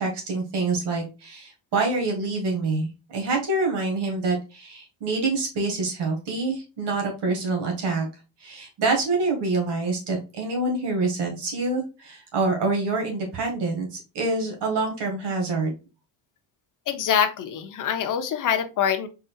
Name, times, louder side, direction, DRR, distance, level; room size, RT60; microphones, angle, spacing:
voice 1, 0.0-8.1 8.4-15.7, right 3 dB, 60° right, 1 dB, 1.8 m, -26 dB
voice 2, 16.9-19.1, left 8 dB, 40° left, 8 dB, 0.7 m, -24 dB
4.2 x 3.8 x 2.3 m, 0.30 s
cardioid pair, 165°, 47 cm